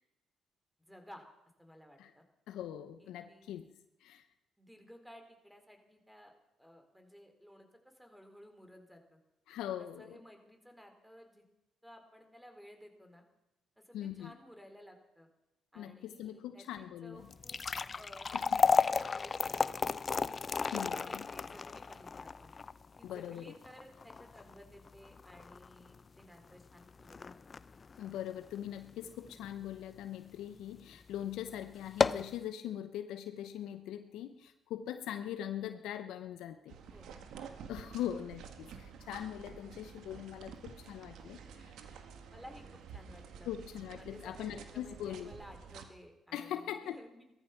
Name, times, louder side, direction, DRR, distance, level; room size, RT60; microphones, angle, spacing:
voice 1, 0.9-1.3 1.6-2.2 3.0-3.6 4.6-9.2 9.8-11.4 11.8-13.2 13.8-15.3 15.7-19.9 20.7-22.5 23.0-27.4 36.9-37.2 42.3-43.5 44.0-47.2, equal, ahead, 5 dB, 4.0 m, -56 dB
voice 2, 2.5-3.7 4.0-4.2 9.5-10.2 13.9-14.3 15.8-17.3 18.3-18.6 20.7-21.3 23.0-23.5 28.0-36.8 37.7-41.7 43.5-45.3 46.3-47.0, left 11 dB, 80° left, 9 dB, 0.8 m, -41 dB
sound 1, 17.2-29.5 29.9-30.0 30.8-30.9 31.3-31.4 31.8-32.4, left 5 dB, 35° left, 0.6 m, -33 dB
sound 2, 36.7-45.9, right 6 dB, 75° right, 1.8 m, -50 dB
17.5 x 14.0 x 5.8 m, 0.90 s
supercardioid pair, 70°, 0 cm